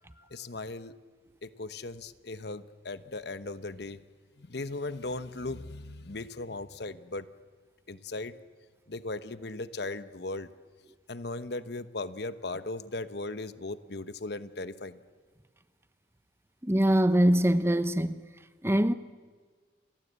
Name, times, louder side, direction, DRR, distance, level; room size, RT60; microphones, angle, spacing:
voice 1, 0.2-0.9 1.4-4.0 4.4-7.3 7.9-8.3 8.9-10.5 11.1-15.0, left 2 dB, 55° left, 1.0 m, -37 dB
voice 2, 16.6-18.2 18.6-18.9, right 1 dB, 15° right, 0.8 m, -23 dB
29.0 x 23.0 x 8.2 m
head